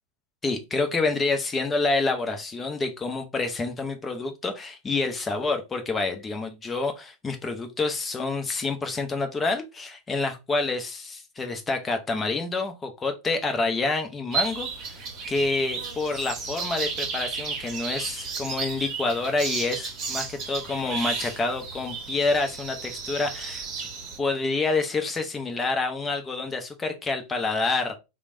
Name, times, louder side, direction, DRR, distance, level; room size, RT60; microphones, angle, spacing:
voice 1, 0.4-23.7 24.2-28.0, left 3 dB, 15° left, 0.6 m, -28 dB
sound 1, 14.3-24.2, right 5 dB, 35° right, 0.9 m, -33 dB
3.1 x 2.1 x 2.6 m
figure-of-eight pair, 90°, 0 cm